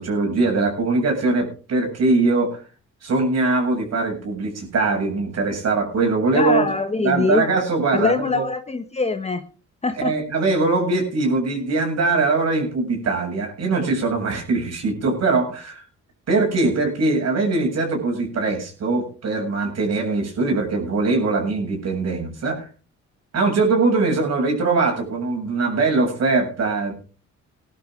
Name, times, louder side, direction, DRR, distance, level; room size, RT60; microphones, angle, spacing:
voice 1, 0.0-2.6 3.0-6.6 7.0-8.4 10.0-15.8 16.3-22.7 23.3-26.9, right 3 dB, 55° right, 1 dB, 7.9 m, -21 dB
voice 2, 6.3-7.4 7.9-9.5 9.8-10.1, left 3 dB, 20° left, 6 dB, 1.4 m, -23 dB
20.0 x 12.0 x 3.9 m, 0.38 s
cardioid pair, 90°, 30 cm